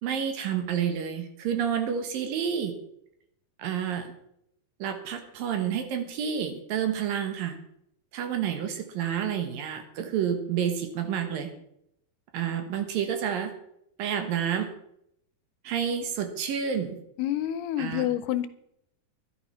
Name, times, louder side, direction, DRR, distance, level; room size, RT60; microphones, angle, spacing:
voice 1, 0.0-2.7 3.6-4.1 4.8-7.6 8.1-11.5 12.3-13.5 14.0-14.7 15.6-17.0 17.8-18.1, right 8 dB, 70° right, 7 dB, 3.0 m, -29 dB
voice 2, 17.2-18.5, left 12 dB, 90° left, 13 dB, 2.9 m, -28 dB
12.5 x 11.0 x 5.7 m, 0.76 s
omnidirectional pair, 4.5 m